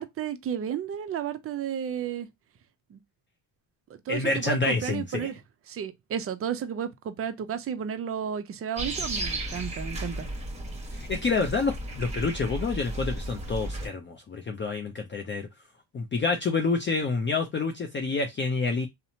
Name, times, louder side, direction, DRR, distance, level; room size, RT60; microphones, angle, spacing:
voice 1, 0.0-2.3 2.9-3.0 4.1-5.4 5.7-10.3, right 8 dB, 30° right, 0.4 m, -32 dB
voice 2, 4.1-5.3 10.9-15.5 15.9-18.9, left 4 dB, 25° left, 0.5 m, -28 dB
sound 1, 8.7-13.9, right 1 dB, 15° right, 1.0 m, -34 dB
2.7 x 2.1 x 2.7 m
supercardioid pair, 80°, 46 cm